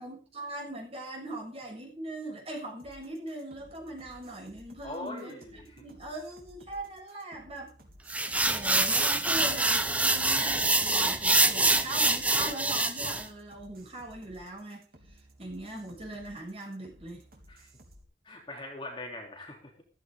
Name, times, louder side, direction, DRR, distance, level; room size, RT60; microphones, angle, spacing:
voice 1, 0.0-5.4 5.8-7.7 8.5-14.9 15.4-17.2, right 1 dB, 35° right, 0 dB, 7.0 m, -40 dB
sound 1, 2.8-18.0, right 1 dB, 55° right, 3.4 m, -56 dB
voice 2, 4.8-5.6 17.5-17.7 18.2-19.8, left 2 dB, 30° left, 0 dB, 3.3 m, -41 dB
sound 2, 8.1-13.2, right 2 dB, 10° right, 0.9 m, -25 dB
15.0 x 15.0 x 3.8 m, 0.36 s
head